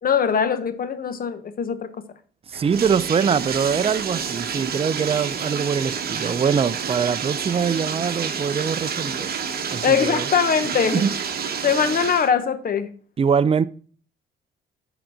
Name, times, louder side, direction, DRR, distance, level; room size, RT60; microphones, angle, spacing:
voice 1, 0.0-1.9 9.8-11.1 11.6-12.9, left 7 dB, 45° left, 1.0 m, -21 dB
voice 2, 2.5-9.3 9.7-10.3 10.9-11.1 13.2-13.7, right 6 dB, 30° right, 0.5 m, -23 dB
Bathtub (filling or washing), 2.5-12.3, right 7 dB, 50° right, 1.0 m, -29 dB
10.5 x 4.0 x 4.9 m
cardioid pair, 90°, 20 cm